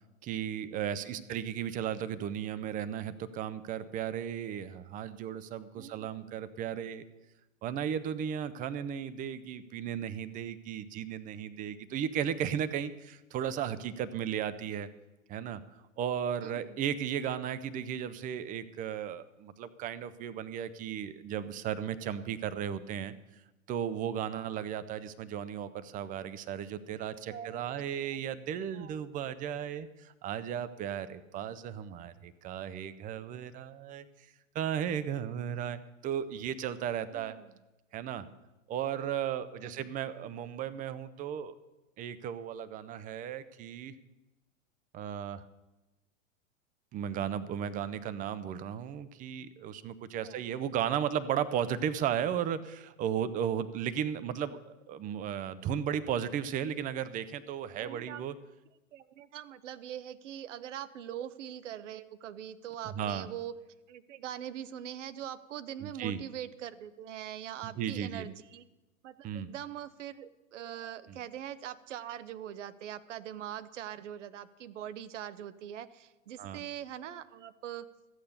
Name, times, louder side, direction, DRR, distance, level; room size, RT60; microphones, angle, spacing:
voice 1, 0.2-7.0 7.6-14.9 15.3-23.1 23.7-34.3 34.5-37.4 37.9-38.3 38.7-41.5 42.0-43.9 44.9-45.4 46.9-58.3 62.9-63.3 65.8-66.2 67.6-68.3 69.2-69.5 71.1-71.2 76.4-76.6, right 9 dB, 20° right, 14 dB, 0.5 m, -35 dB
voice 2, 0.9-1.2 5.8-6.5 16.4-16.8 27.3-27.8 28.1-28.4 28.7-29.0 37.1-37.6 39.6-39.9 50.2-50.4 57.7-58.2 58.9-63.6 63.9-68.7 69.0-77.9, right 10 dB, 65° right, 15 dB, 0.8 m, -43 dB
13.0 x 8.6 x 6.7 m, 1.0 s
figure-of-eight pair, 105°, 40 cm